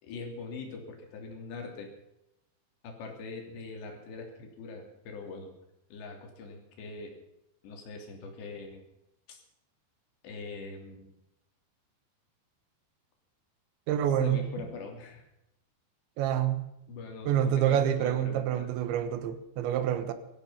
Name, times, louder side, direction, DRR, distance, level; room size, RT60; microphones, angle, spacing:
voice 1, 0.0-1.9 2.8-5.5 5.9-7.1 7.6-8.8 9.3-9.4 10.2-11.1 14.2-15.3 16.9-18.7, left 4 dB, 70° left, 3 dB, 5.3 m, -42 dB
voice 2, 13.9-14.5 16.2-16.7 17.3-20.1, right 10 dB, 85° right, 11 dB, 3.6 m, -27 dB
17.5 x 14.0 x 5.7 m, 0.88 s
omnidirectional pair, 5.2 m